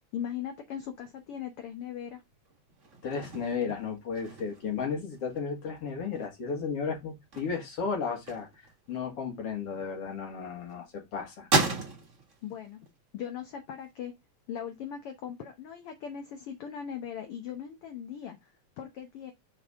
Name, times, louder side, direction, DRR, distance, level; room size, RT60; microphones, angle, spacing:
voice 1, 0.1-2.2 9.7-9.9 12.4-12.8 13.1-14.1 14.5-18.5 18.8-19.3, left 9 dB, 70° left, 1.4 m, -39 dB
sound 1, 0.8-10.2 10.6-13.1 13.4-14.9, right 3 dB, 35° right, 1.3 m, -35 dB
voice 2, 3.0-11.5, left 5 dB, 55° left, 2.3 m, -34 dB
6.7 x 4.2 x 3.5 m
omnidirectional pair, 3.6 m